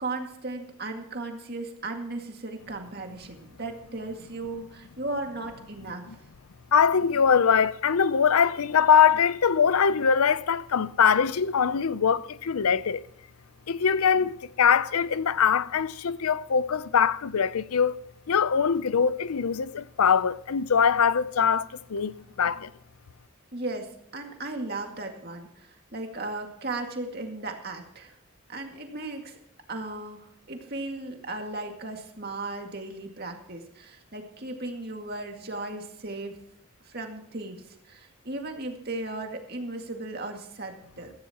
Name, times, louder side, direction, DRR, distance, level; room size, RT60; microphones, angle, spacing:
voice 1, 0.0-6.0 23.5-28.2 28.5-29.4 29.7-36.4 36.9-41.1, right 2 dB, 45° right, 2.1 m, -36 dB
voice 2, 6.7-13.0 13.7-18.0 18.3-22.7, left 7 dB, 85° left, 0.6 m, -22 dB
16.5 x 14.5 x 2.9 m
head